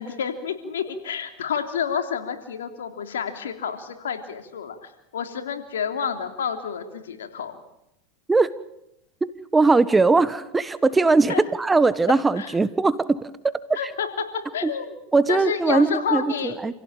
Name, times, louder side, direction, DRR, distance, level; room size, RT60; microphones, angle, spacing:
voice 1, 0.0-7.6 11.3-11.4 12.4-12.5 13.7-14.1 14.5-15.0 15.3-16.7, left 7 dB, 90° left, 7 dB, 3.2 m, -29 dB
voice 2, 9.2-13.3 14.6-14.7 15.1-16.7, right 3 dB, 15° right, 15 dB, 1.3 m, -20 dB
28.5 x 16.5 x 9.0 m, 0.83 s
hypercardioid pair, 105°, 0 cm